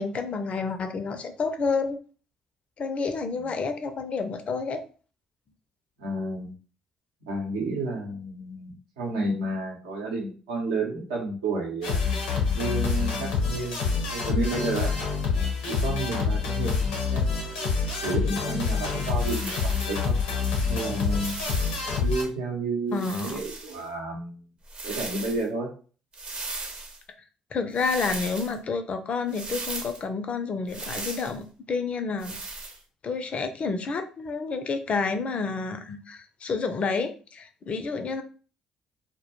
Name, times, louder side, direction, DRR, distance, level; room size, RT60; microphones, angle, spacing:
voice 1, 0.0-2.0 2.8-4.8 22.9-23.4 27.5-32.4 33.0-38.2, left 4 dB, 45° left, 8 dB, 0.4 m, -29 dB
voice 2, 6.0-6.5 7.3-12.0 12.5-14.9 15.7-17.7 18.0-20.2 20.6-21.4 22.0-24.3 24.8-25.7, right 2 dB, 85° right, -1 dB, 0.7 m, -31 dB
sound 1, 11.8-22.2, left 5 dB, 80° left, 0.7 m, -27 dB
sound 2, 19.2-20.1 21.0-22.0 22.9-23.8 24.6-25.4 26.1-27.0 27.7-28.5 29.3-30.0 30.7-31.4 32.2-32.8, right 3 dB, 40° right, 0.6 m, -37 dB
2.1 x 2.1 x 2.9 m, 0.38 s
hypercardioid pair, 50°, 3 cm